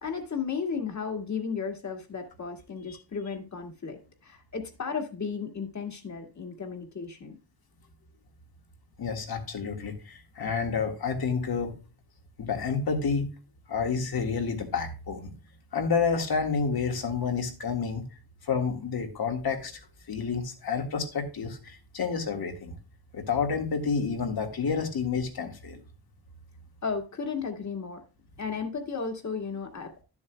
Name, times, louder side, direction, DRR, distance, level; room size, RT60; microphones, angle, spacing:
voice 1, 0.0-7.4 26.8-28.0 28.4-30.0, left 5 dB, 50° left, 1.9 m, -34 dB
voice 2, 9.0-11.7 12.4-13.3 13.7-15.3 15.7-18.0 18.4-19.8 20.1-22.8 23.1-25.8, left 5 dB, 80° left, 1.8 m, -29 dB
12.5 x 7.0 x 2.2 m
wide cardioid pair, 135°, 37 cm